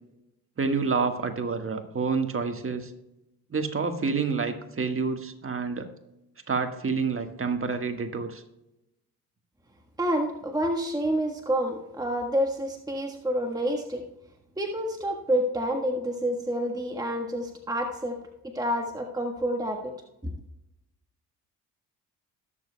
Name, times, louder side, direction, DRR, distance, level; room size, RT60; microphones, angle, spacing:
voice 1, 0.6-2.9 3.5-5.9 6.5-8.4, right 4 dB, 30° right, 6 dB, 1.6 m, -28 dB
voice 2, 10.0-14.0 14.6-18.2 18.5-19.9 20.2-20.3, equal, 10° right, 2 dB, 1.4 m, -28 dB
20.5 x 7.0 x 2.3 m, 0.89 s
hypercardioid pair, 50°, 45 cm